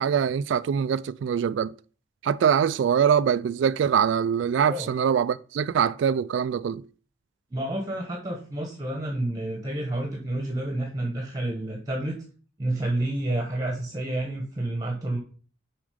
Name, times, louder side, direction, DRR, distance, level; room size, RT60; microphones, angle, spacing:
voice 1, 0.0-1.7 2.2-6.8, right 7 dB, 65° right, 0.3 m, -23 dB
voice 2, 7.5-12.2 12.6-15.2, right 1 dB, 20° right, 1.2 m, -29 dB
7.0 x 5.0 x 5.0 m
head